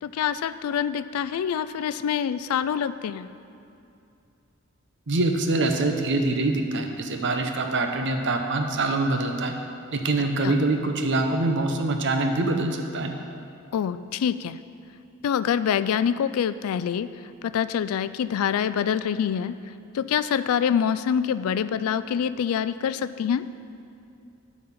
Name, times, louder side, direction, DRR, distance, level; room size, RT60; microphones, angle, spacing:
voice 1, 0.0-3.3 10.4-10.6 13.7-14.6 15.2-17.1 17.4-19.5 19.9-23.4, left 8 dB, 80° left, 14 dB, 0.3 m, -25 dB
voice 2, 5.1-9.6 9.9-13.1, right 2 dB, 55° right, 4 dB, 0.7 m, -24 dB
11.0 x 4.1 x 5.8 m, 2.6 s
head